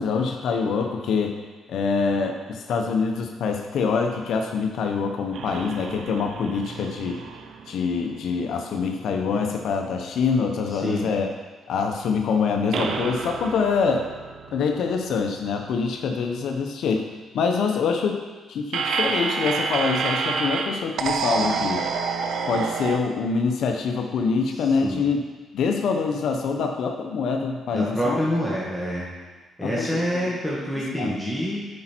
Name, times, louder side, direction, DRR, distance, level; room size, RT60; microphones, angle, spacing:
voice 1, 0.0-1.4 1.7-7.2 7.7-11.3 11.7-14.1 14.5-17.1 17.3-21.9 22.5-25.3 25.5-28.2 29.6-29.9 30.2-30.3 31.0-31.2, left 5 dB, 70° left, 3 dB, 0.8 m, -25 dB
sound 1, 5.3-8.8 9.2-9.3 12.7-15.9 18.7-23.0, right 5 dB, 70° right, 0.6 m, -29 dB
voice 2, 10.7-11.1 24.5-25.0 27.7-29.1 29.6-31.7, equal, ahead, -7 dB, 1.6 m, -27 dB
8.5 x 5.3 x 4.4 m, 1.3 s
cardioid pair, 90°, 0 cm